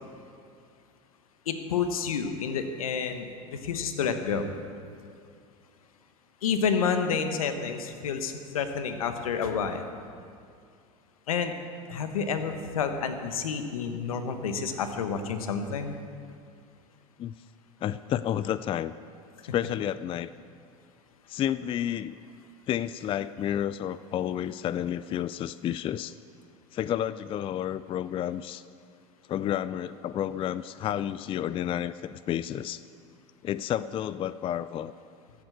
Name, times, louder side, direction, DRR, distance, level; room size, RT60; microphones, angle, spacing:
voice 1, 1.5-4.5 6.4-9.9 11.3-11.5 11.9-15.9, left 6 dB, 80° left, 8 dB, 1.2 m, -29 dB
voice 2, 17.8-18.9 19.5-20.3 21.3-22.2 22.7-26.1 26.7-28.6 29.3-32.8 33.4-34.9, left 10 dB, 30° left, 15 dB, 0.4 m, -30 dB
14.5 x 7.7 x 8.0 m, 2.3 s
hypercardioid pair, 85°, 18 cm